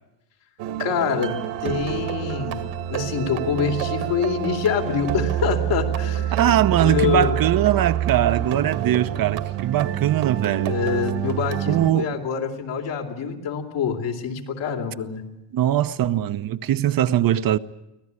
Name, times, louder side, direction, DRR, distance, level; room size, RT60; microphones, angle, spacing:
sound 1, 0.6-11.9, right 11 dB, 75° right, 2.1 m, -27 dB
voice 1, 0.8-1.3 1.6-2.6 2.9-6.4 6.7-7.4 10.6-15.2, left 6 dB, 70° left, 3.5 m, -25 dB
voice 2, 6.3-10.8 11.6-12.2 15.5-17.6, right 11 dB, 50° right, 0.9 m, -21 dB
25.0 x 17.0 x 9.7 m
supercardioid pair, 95°, 45 cm